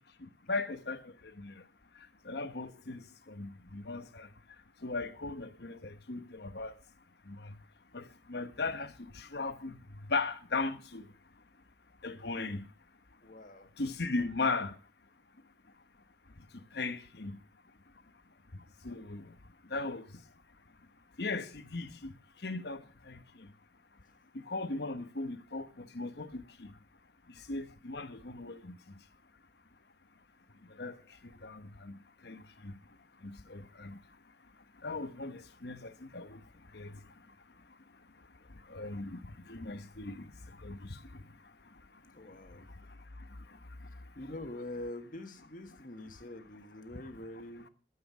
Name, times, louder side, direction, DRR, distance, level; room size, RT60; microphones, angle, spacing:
voice 1, 0.2-1.7 1.9-4.3 4.8-6.8 7.2-7.6 7.9-11.1 12.0-12.7 13.8-14.8 16.4-17.4 18.5-19.3 19.7-20.2 21.2-23.5 24.3-26.8 27.3-29.0 30.6-32.8 33.2-34.0 34.8-37.3 38.5-42.0 42.3-44.1 46.9-47.0, left 3 dB, 65° left, 1.1 m, -39 dB
voice 2, 13.2-13.7 42.1-42.6 44.1-47.7, left 1 dB, 50° left, 1.7 m, -45 dB
13.0 x 7.8 x 6.1 m
head